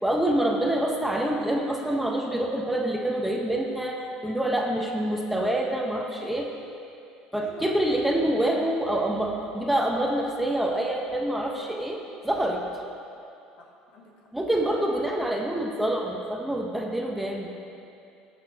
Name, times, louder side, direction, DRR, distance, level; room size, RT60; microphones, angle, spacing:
voice 1, 0.0-6.5 7.3-12.8 14.3-17.5, right 1 dB, 5° right, 0 dB, 1.1 m, -26 dB
voice 2, 7.4-7.7 13.6-14.1 14.4-14.8, left 2 dB, 65° left, -1 dB, 1.6 m, -46 dB
18.0 x 6.2 x 3.0 m, 2.6 s
supercardioid pair, 80°, 3 cm